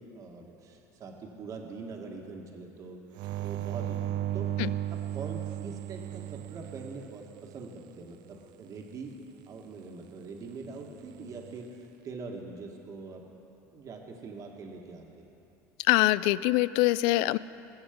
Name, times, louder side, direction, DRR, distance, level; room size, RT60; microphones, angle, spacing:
voice 1, 0.0-3.0 3.4-4.5 5.1-9.2 9.5-13.2 13.7-15.3, right 4 dB, 45° right, 1 dB, 1.7 m, -43 dB
sound 1, 3.1-7.8 11.0-11.6, right 12 dB, 65° right, 0.5 m, -35 dB
voice 2, 15.9-17.4, left 18 dB, 75° left, 18 dB, 0.3 m, -24 dB
21.0 x 7.1 x 5.2 m, 2.8 s
supercardioid pair, 100°, 8 cm